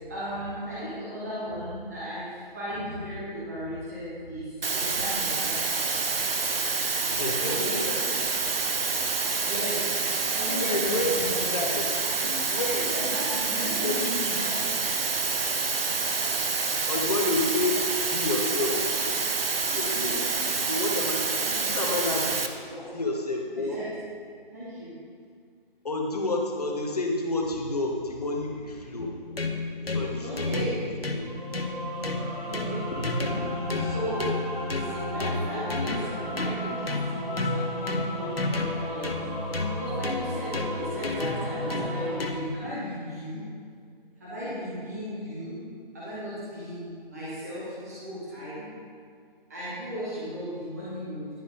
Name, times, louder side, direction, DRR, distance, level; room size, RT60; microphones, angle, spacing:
voice 1, 0.0-5.6 7.4-7.9 9.4-9.9 10.3-11.5 12.2-12.4 12.9-14.7 16.2-16.3 19.9-20.2 21.4-21.8 22.7-22.9 23.5-23.9 24.5-25.0 30.2-30.8 32.5-32.9 33.8-34.3 34.7-39.1 39.7-43.4 44.2-45.6 45.9-48.7 49.5-51.3, equal, 15° right, -10 dB, 0.9 m, -36 dB
sound 1, 4.6-22.5, right 4 dB, 75° right, 0.7 m, -27 dB
voice 2, 7.1-8.1 10.0-10.2 10.6-11.9 12.5-12.9 13.6-14.4 16.9-17.9 18.1-18.8 19.6-21.4 21.7-22.5 22.9-23.8 25.8-29.1 29.8-30.6 31.1-31.3 31.7-31.8 33.0-33.9, left 2 dB, 40° left, 1 dB, 1.0 m, -30 dB
sound 2, 29.0-42.7, left 2 dB, 90° left, 0.8 m, -32 dB
sound 3, 31.2-42.2, equal, 40° right, 1.6 m, -35 dB
10.0 x 5.0 x 3.7 m, 2.1 s
figure-of-eight pair, 155°, 29 cm